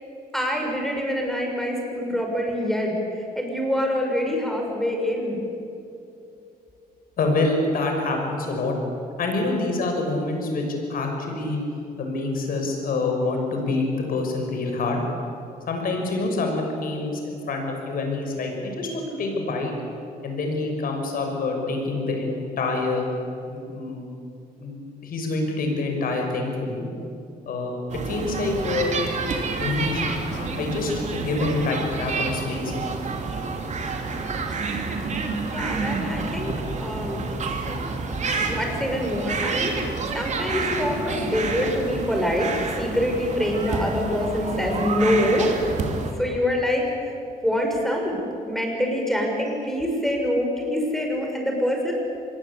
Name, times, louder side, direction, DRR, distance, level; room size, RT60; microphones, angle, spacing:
voice 1, 0.3-5.4 35.0-35.1 35.5-37.7 38.4-45.8 46.2-47.1 47.4-48.2 48.5-52.0, left 1 dB, ahead, 0 dB, 6.5 m, -25 dB
voice 2, 7.2-8.7 9.2-11.6 12.0-15.0 15.7-19.7 20.2-23.1 23.5-24.0 24.6-26.9 27.5-27.7 28.0-28.9 29.6-33.0, left 2 dB, 65° left, 3 dB, 6.3 m, -26 dB
sound 1, 27.9-46.1, right 4 dB, 45° right, 3.2 m, -29 dB
25.5 x 21.5 x 8.6 m, 2.7 s
cardioid pair, 115°, 16 cm